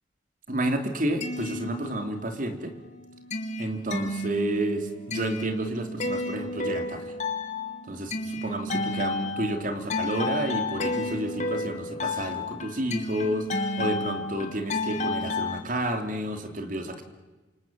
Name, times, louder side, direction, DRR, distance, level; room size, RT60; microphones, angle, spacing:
voice 1, 0.5-2.7 3.6-7.0 7.9-17.0, right 1 dB, 45° right, 6 dB, 3.1 m, -30 dB
sound 1, 1.0-2.4 2.8-15.6, left 2 dB, 40° left, 2.7 m, -32 dB
28.0 x 26.5 x 7.6 m, 1.2 s
head